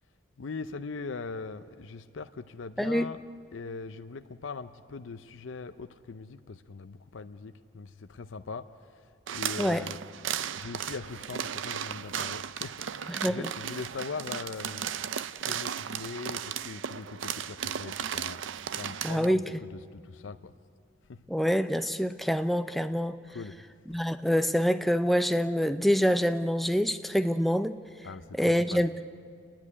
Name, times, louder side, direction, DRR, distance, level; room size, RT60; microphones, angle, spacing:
voice 1, 0.4-3.2 3.5-8.7 9.3-10.0 10.5-14.9 15.4-18.4 18.7-20.5 21.1-21.2 23.3-23.5 28.0-28.8, left 4 dB, 85° left, 0.6 m, -41 dB
voice 2, 2.8-3.1 9.6-9.9 13.1-13.5 19.0-19.5 21.3-23.2 23.9-27.8 28.4-29.0, equal, ahead, 0.5 m, -26 dB
sound 1, 9.3-19.3, right 8 dB, 80° right, 0.5 m, -35 dB
30.0 x 10.5 x 9.7 m
head